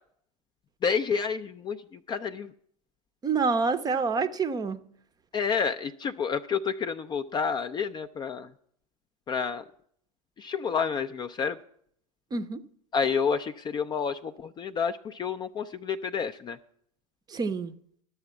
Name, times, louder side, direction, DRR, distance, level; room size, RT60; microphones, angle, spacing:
voice 1, 0.8-2.5 5.3-8.5 9.3-9.6 10.4-11.6 12.9-16.6, left 6 dB, 20° left, 0.4 m, -29 dB
voice 2, 3.2-4.8 12.3-12.6 17.3-17.7, right 4 dB, 20° right, 0.6 m, -27 dB
12.0 x 6.7 x 7.1 m
hypercardioid pair, 95°, 20 cm